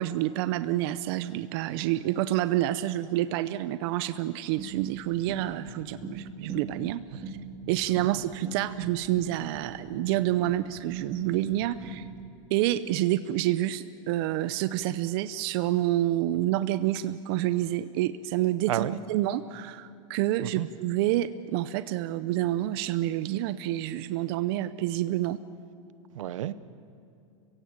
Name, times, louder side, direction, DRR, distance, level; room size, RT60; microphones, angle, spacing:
voice 1, 0.0-7.4 7.7-12.1 12.5-25.4, right 14 dB, 50° right, 0.7 m, -28 dB
sound 1, 4.6-12.3, right 3 dB, 15° right, 3.5 m, -42 dB
voice 2, 18.7-19.0 20.4-20.7 26.1-26.5, right 12 dB, 80° right, 1.0 m, -30 dB
30.0 x 16.5 x 9.0 m
supercardioid pair, 150°, 16 cm